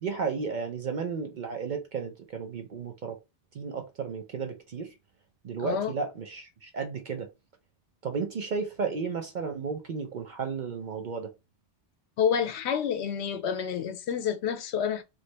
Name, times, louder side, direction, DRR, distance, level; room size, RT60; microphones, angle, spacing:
voice 1, 0.0-3.2 3.5-4.9 5.4-7.3 8.0-11.3, right 5 dB, 55° right, 0.6 m, -33 dB
voice 2, 5.6-5.9 12.2-15.0, left 8 dB, 75° left, 0.8 m, -28 dB
3.1 x 2.5 x 3.2 m
omnidirectional pair, 1.2 m